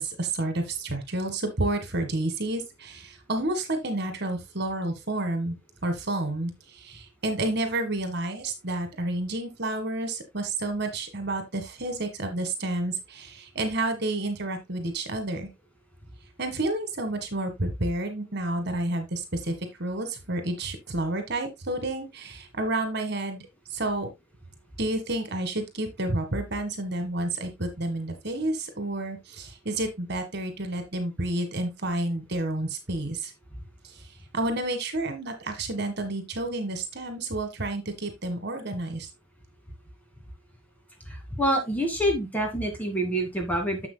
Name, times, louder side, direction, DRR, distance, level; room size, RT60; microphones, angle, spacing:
voice 1, 0.0-5.6 5.8-15.5 16.4-23.4 23.7-24.1 24.8-33.3 33.9-34.0 34.3-39.1, right 2 dB, 55° right, 7 dB, 1.8 m, -30 dB
voice 2, 41.1-43.9, right 1 dB, 10° left, 2 dB, 2.4 m, -27 dB
11.0 x 7.4 x 2.3 m, 0.20 s
head